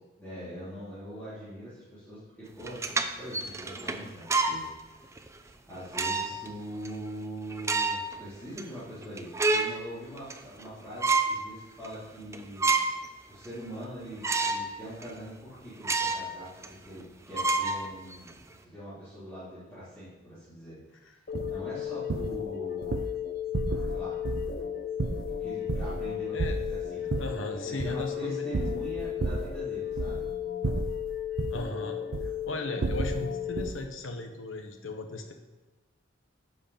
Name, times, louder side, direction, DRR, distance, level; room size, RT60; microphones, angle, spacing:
voice 1, 0.2-4.7 4.9-12.7 13.3-23.0 23.9-24.2 25.3-27.1 27.5-30.3, equal, 10° left, -14 dB, 3.4 m, -43 dB
sound 1, 2.6-4.6 5.2-5.3 5.9-6.5 6.8-6.9 7.5-8.1 8.6-8.7 9.0-9.8 10.2-10.7 11.0-11.4 11.8-11.9 12.3-13.1 13.4-13.5 14.2-14.7 15.0-15.1 15.8-16.3 16.6-16.7 17.3-18.3, right 3 dB, 15° right, 0.5 m, -28 dB
sound 2, 21.3-33.7, left 10 dB, 50° left, 0.8 m, -35 dB
sound 3, 21.3-21.6 22.1-22.4 22.8-23.1 23.5-24.0 24.2-24.6 25.0-26.1 26.4-27.4 27.8-28.1 28.5-29.6 29.9-30.3 30.6-31.7 32.1-32.4 32.8-33.2 33.6-33.8, right 3 dB, 75° right, 0.5 m, -32 dB
voice 2, 27.2-28.5 31.5-32.0 32.5-35.3, left 2 dB, 80° left, 5 dB, 1.1 m, -36 dB
10.0 x 5.0 x 5.7 m, 1.2 s
head